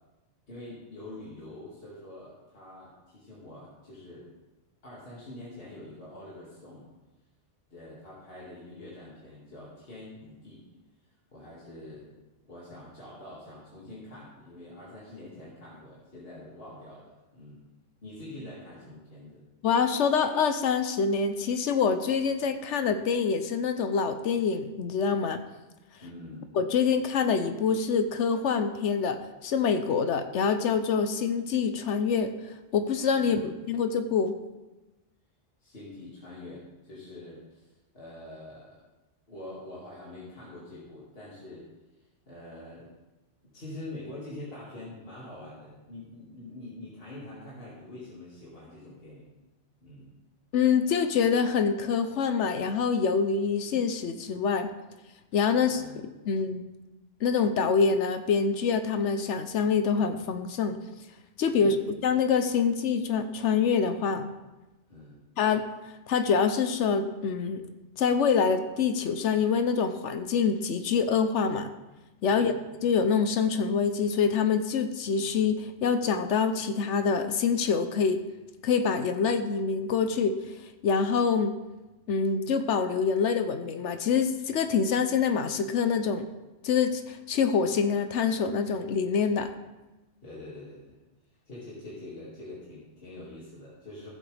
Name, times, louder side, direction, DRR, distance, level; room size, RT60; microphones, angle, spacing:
voice 1, 0.5-4.3 4.8-6.9 7.7-10.7 11.3-12.1 12.4-17.6 18.0-19.4 26.0-26.5 33.2-33.5 35.6-38.8 39.3-41.7 42.3-42.9 43.4-49.3 49.8-50.1 55.7-56.0 61.6-61.8 64.9-65.2 72.3-72.6 90.2-91.0 91.5-94.1, left 1 dB, 50° left, -7 dB, 2.4 m, -45 dB
voice 2, 19.6-25.4 26.5-32.3 32.7-34.4 50.5-54.7 55.3-55.8 56.3-56.6 57.2-60.8 61.4-64.4 65.4-65.6 66.1-67.6 68.0-71.7 72.2-72.5 72.8-78.2 78.6-80.4 80.8-81.5 82.1-86.2 86.6-89.5, left 6 dB, 75° left, 9 dB, 1.0 m, -25 dB
15.0 x 7.8 x 3.3 m, 1.1 s
omnidirectional pair, 1.2 m